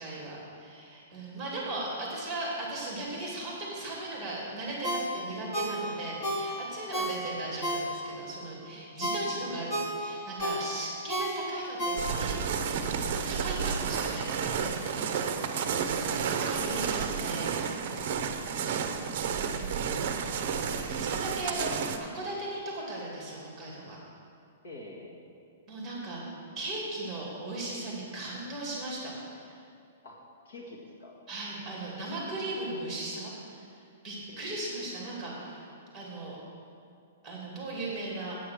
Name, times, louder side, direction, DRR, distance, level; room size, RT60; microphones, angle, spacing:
voice 1, 0.0-9.7 10.0-17.5 19.4-19.7 20.9-24.0 25.7-26.2 26.6-29.6 31.3-33.6 34.0-35.7 35.9-36.4 37.2-38.4, right 2 dB, 5° right, -4 dB, 2.6 m, -37 dB
Ringtone, 4.8-8.3 8.7-12.5 12.8-12.9, right 1 dB, 15° left, 1.2 m, -33 dB
sound 1, 12.0-22.0, right 6 dB, 40° right, 0.7 m, -31 dB
voice 2, 19.6-20.1 24.6-25.3 30.0-30.2 30.5-31.2 34.3-34.5, left 2 dB, 55° left, -2 dB, 1.8 m, -48 dB
8.6 x 8.4 x 6.3 m, 2.4 s
hypercardioid pair, 175°, 0 cm